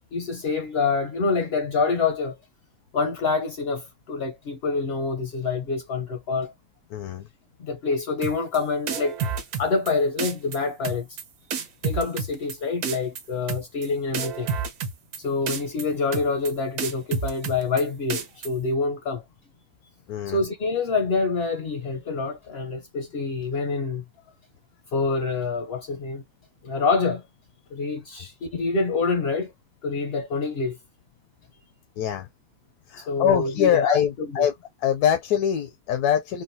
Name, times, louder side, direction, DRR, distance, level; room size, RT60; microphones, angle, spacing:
voice 1, 0.1-2.4 2.9-6.5 7.6-9.2 9.6-11.1 11.8-14.5 15.2-19.2 20.3-24.0 24.9-26.2 26.6-27.2 27.7-29.5 29.8-30.8 33.0-34.5, left 4 dB, 55° left, 0.7 m, -26 dB
voice 2, 6.9-7.3 20.1-20.4 32.0-32.3 32.9-34.5 34.8-36.4, left 9 dB, 80° left, 1.1 m, -23 dB
sound 1, 8.2-8.6 8.9-9.9 10.2-10.6 10.8-11.2 11.5-12.5 12.8-13.2 13.5-13.9 14.1-15.2 15.5-15.8 16.1-16.5 16.8-17.8 18.1-18.5, right 6 dB, 75° right, 1.3 m, -29 dB
3.8 x 2.2 x 2.6 m
omnidirectional pair, 1.6 m